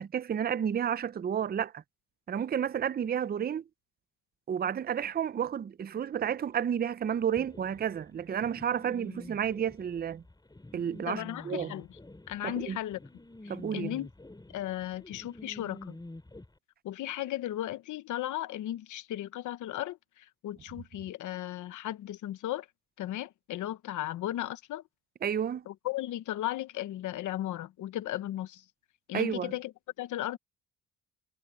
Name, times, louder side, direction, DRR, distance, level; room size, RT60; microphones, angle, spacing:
voice 1, 0.0-1.8 2.3-3.6 4.5-10.2 10.7-11.7 12.4-12.8 13.5-13.9 25.2-25.7 29.1-29.5, right 8 dB, 30° right, 0.6 m, -31 dB
sound 1, 7.4-16.5, left 2 dB, 15° left, 4.9 m, -48 dB
voice 2, 11.1-12.0 12.3-13.0 13.4-14.1 14.5-16.0 16.8-22.7 23.0-24.8 25.7-28.6 29.1-29.7 30.0-30.4, left 13 dB, 80° left, 1.1 m, -36 dB
cardioid pair, 90°, 30 cm